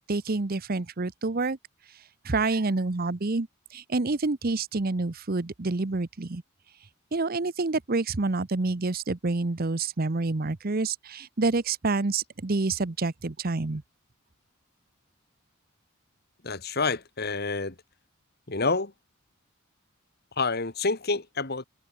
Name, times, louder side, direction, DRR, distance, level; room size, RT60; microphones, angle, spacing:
voice 1, 0.1-1.6 2.2-3.5 3.7-6.4 7.1-13.8, right 3 dB, 45° right, 0.8 m, -28 dB
voice 2, 16.4-17.8 18.5-18.9 20.4-21.6, left 3 dB, 50° left, 1.9 m, -28 dB
head